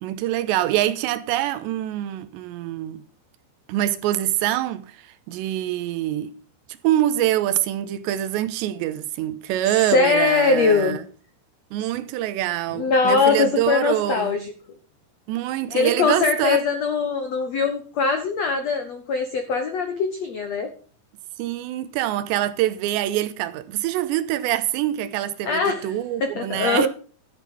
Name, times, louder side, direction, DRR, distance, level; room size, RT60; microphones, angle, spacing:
voice 1, 0.0-3.0 3.7-6.4 6.7-11.0 11.7-14.4 15.3-16.6 21.4-26.9, right 13 dB, 85° right, 3.1 m, -25 dB
voice 2, 9.8-11.0 12.7-14.5 15.7-20.7 25.4-25.9 26.2-26.9, left 4 dB, 90° left, 1.4 m, -21 dB
13.0 x 8.2 x 5.5 m
omnidirectional pair, 5.0 m